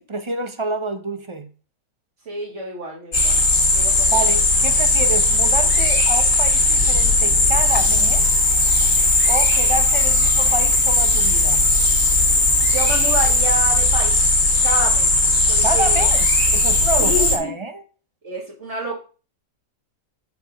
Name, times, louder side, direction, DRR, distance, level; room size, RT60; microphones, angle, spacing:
voice 1, 0.1-1.5 3.3-3.4 3.7-8.5 9.3-11.6 15.6-16.3 16.5-17.8, right 3 dB, 25° right, 0.7 m, -28 dB
voice 2, 2.3-4.2 12.3-14.2 14.6-15.1 15.5-16.1 17.0-17.5 18.2-19.0, right 2 dB, 40° right, 2.2 m, -28 dB
sound 1, 3.1-17.4, left 2 dB, 65° left, 2.6 m, -17 dB
6.9 x 6.3 x 5.1 m
omnidirectional pair, 1.8 m